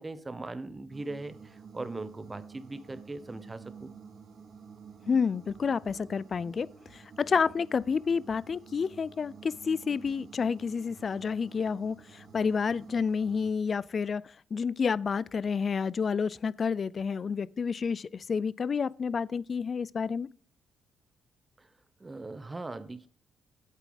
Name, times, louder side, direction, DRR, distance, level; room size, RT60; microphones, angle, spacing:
voice 1, 0.0-3.9 21.6-21.7 22.0-23.1, right 2 dB, 20° right, 0.9 m, -40 dB
sound 1, 0.9-13.5, right 6 dB, 60° right, 1.7 m, -50 dB
voice 2, 5.1-14.2 14.5-20.3, left 5 dB, 45° left, 0.3 m, -29 dB
8.3 x 8.2 x 4.0 m
cardioid pair, 90°, 0 cm